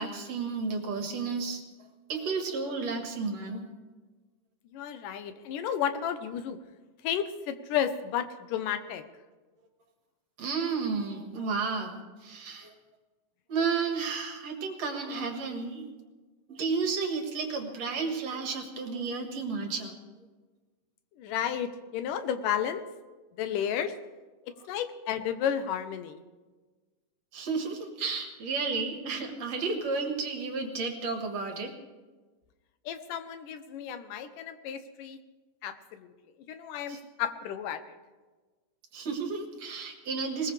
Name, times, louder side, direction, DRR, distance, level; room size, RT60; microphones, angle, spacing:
voice 1, 0.0-1.6 2.1-3.6 10.4-12.7 13.5-15.9 16.5-19.9 27.3-31.7 36.9-37.0 38.9-40.5, right 4 dB, 60° right, 3 dB, 2.7 m, -32 dB
voice 2, 4.7-6.6 7.0-9.0 21.2-22.8 23.3-24.0 24.4-26.2 32.9-35.2 35.6-36.1 36.5-38.0, left 9 dB, 85° left, 10 dB, 2.5 m, -32 dB
20.5 x 20.0 x 3.4 m, 1.3 s
omnidirectional pair, 3.7 m